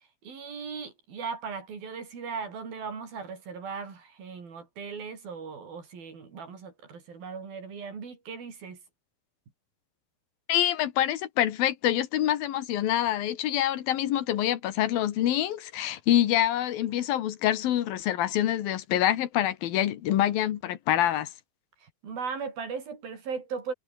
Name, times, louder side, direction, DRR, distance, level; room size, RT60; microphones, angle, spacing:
voice 1, 0.2-8.8 21.8-23.7, right 5 dB, 75° right, 6.8 m, -38 dB
voice 2, 10.5-21.3, left 12 dB, 80° left, 3.3 m, -26 dB
omnidirectional pair, 4.2 m